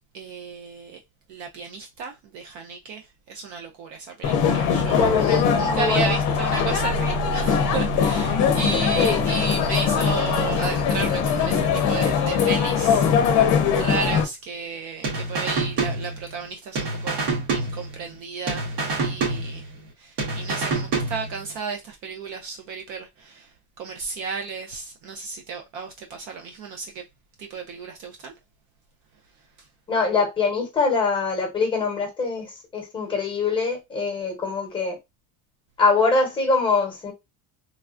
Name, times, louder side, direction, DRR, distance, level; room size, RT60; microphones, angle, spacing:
voice 1, 0.1-1.0 1.3-19.7 20.0-27.0 27.4-28.3, right 4 dB, 45° right, 0.4 m, -33 dB
sound 1, 4.2-14.2, left 6 dB, 45° left, 0.7 m, -21 dB
voice 2, 5.0-6.1 9.0-9.2 29.9-35.0 35.8-37.1, left 4 dB, 10° left, 0.9 m, -23 dB
sound 2, 15.0-16.5 16.8-18.2 18.5-19.9 20.2-21.5, right 3 dB, 70° right, 1.4 m, -27 dB
3.3 x 2.3 x 2.4 m
cardioid pair, 180°, 42 cm